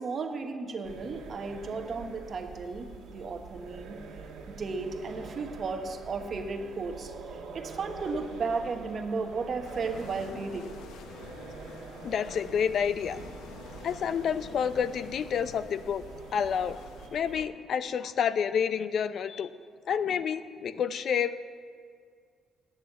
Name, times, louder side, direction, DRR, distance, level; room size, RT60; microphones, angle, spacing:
voice 1, 0.0-4.0 4.5-10.8, right 4 dB, 50° right, 5 dB, 1.1 m, -34 dB
sound 1, 0.8-17.5, right 4 dB, 85° right, 1.7 m, -45 dB
sound 2, 9.6-17.1, left 6 dB, 90° left, 0.8 m, -49 dB
voice 2, 12.0-13.2 13.8-16.0 16.3-16.8 17.1-19.5 19.9-21.4, left 7 dB, 65° left, 13 dB, 0.5 m, -29 dB
8.9 x 8.0 x 9.3 m, 2.1 s
cardioid pair, 90°, 0 cm